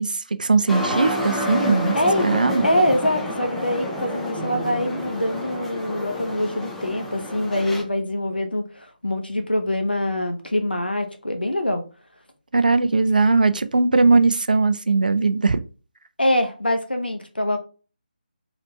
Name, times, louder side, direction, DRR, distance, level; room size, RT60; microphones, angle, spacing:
voice 1, 0.0-1.9 2.2-2.6 12.5-15.6, right 3 dB, 60° right, 0.5 m, -19 dB
sound 1, 0.7-7.8, left 1 dB, ahead, 0.4 m, -29 dB
voice 2, 1.9-2.3 2.6-11.8 16.2-17.6, left 1 dB, 85° left, 1.1 m, -24 dB
4.0 x 3.0 x 3.1 m
figure-of-eight pair, 155°, 5 cm